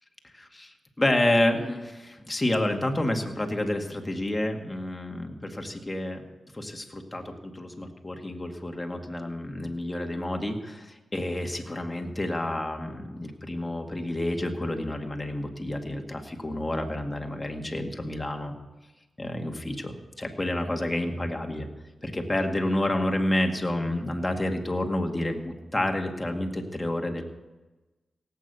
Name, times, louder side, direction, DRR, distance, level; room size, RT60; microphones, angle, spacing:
voice 1, 0.3-6.3 6.5-18.5 19.2-21.7 22.0-27.2, left 1 dB, 20° left, 3 dB, 2.1 m, -29 dB
17.5 x 8.7 x 6.9 m, 1.1 s
cardioid pair, 60°, 0 cm